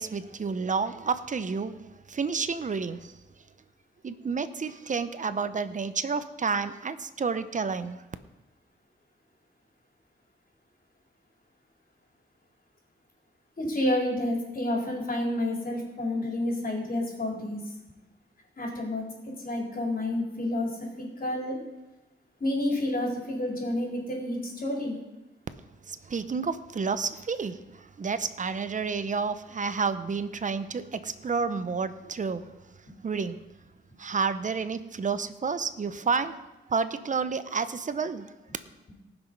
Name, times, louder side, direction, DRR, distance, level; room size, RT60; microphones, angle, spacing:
voice 1, 0.0-1.8 2.1-3.1 4.0-8.0 25.9-32.4 33.0-33.4 34.0-36.4 36.7-38.3, right 5 dB, 40° right, 12 dB, 0.8 m, -30 dB
voice 2, 13.6-17.6 18.6-19.0 19.4-21.6 22.4-25.0, left 1 dB, 45° left, -1 dB, 4.0 m, -29 dB
18.5 x 6.2 x 5.4 m, 1.0 s
cardioid pair, 80°, 21 cm